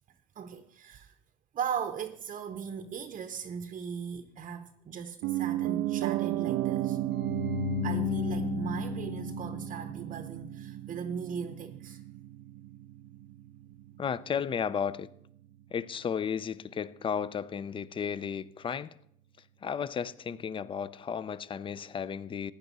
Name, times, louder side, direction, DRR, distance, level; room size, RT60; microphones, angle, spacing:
voice 1, 0.4-1.1 1.5-7.0 7.8-12.0, right 7 dB, 40° right, 0.7 m, -38 dB
Piano, 5.2-15.2 15.5-15.6, right 14 dB, 70° right, 0.6 m, -34 dB
sound 1, 7.1-10.3, left 11 dB, 50° left, 0.9 m, -35 dB
voice 2, 14.0-15.1 15.7-18.9 19.6-22.5, left 7 dB, 25° left, 0.5 m, -33 dB
15.5 x 9.9 x 4.1 m
supercardioid pair, 100°, 20 cm